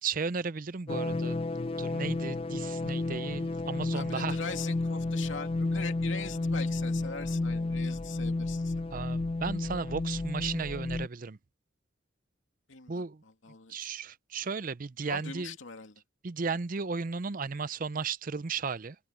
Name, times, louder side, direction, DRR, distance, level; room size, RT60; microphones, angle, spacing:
voice 1, 0.0-1.4 1.8-4.4 8.9-11.4 12.9-13.2 13.7-15.5 16.2-19.0, right 5 dB, 45° right, 0.6 m, -35 dB
sound 1, 0.9-11.1, left 2 dB, 30° left, 0.4 m, -32 dB
voice 2, 3.9-8.7 12.7-13.9 15.1-16.0, left 4 dB, 90° left, 2.5 m, -42 dB
head